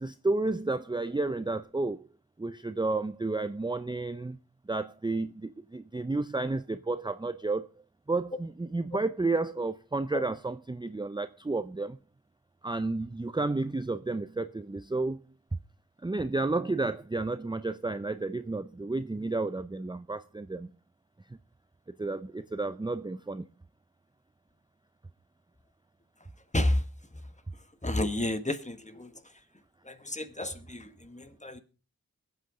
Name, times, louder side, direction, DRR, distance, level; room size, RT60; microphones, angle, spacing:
voice 1, 0.0-2.0 2.4-4.4 4.7-7.7 8.1-12.0 12.6-15.2 16.0-20.7 22.0-23.4, right 3 dB, 15° right, 0.5 m, -31 dB
voice 2, 27.8-29.1 29.9-31.6, left 1 dB, 20° left, 1.5 m, -30 dB
22.5 x 8.3 x 3.7 m
cardioid pair, 45°, 35 cm